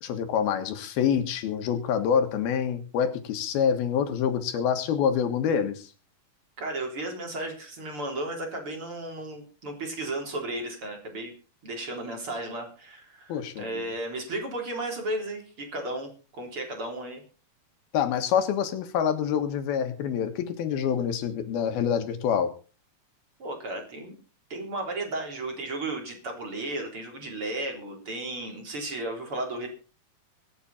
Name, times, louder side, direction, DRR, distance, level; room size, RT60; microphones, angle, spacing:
voice 1, 0.0-5.9 13.3-13.7 17.9-22.5, left 8 dB, 85° left, 8 dB, 3.4 m, -26 dB
voice 2, 6.6-11.3 11.6-17.2 23.4-24.1 24.5-29.7, right 2 dB, 35° right, 2 dB, 4.3 m, -34 dB
24.5 x 8.4 x 4.3 m, 0.35 s
omnidirectional pair, 4.3 m